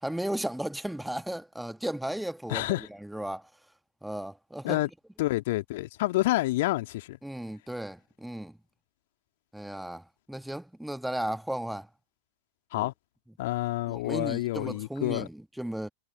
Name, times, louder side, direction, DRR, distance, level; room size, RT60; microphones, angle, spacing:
voice 1, 0.0-3.5 4.0-4.8 7.2-8.6 9.5-11.9 12.7-12.9 13.9-15.9, right 1 dB, ahead, 1.5 m, -35 dB
voice 2, 2.5-2.9 4.6-4.9 5.2-7.2 12.7-12.9 13.4-15.3, left 18 dB, 50° left, 2.4 m, -28 dB
figure-of-eight pair, 90°, 0 cm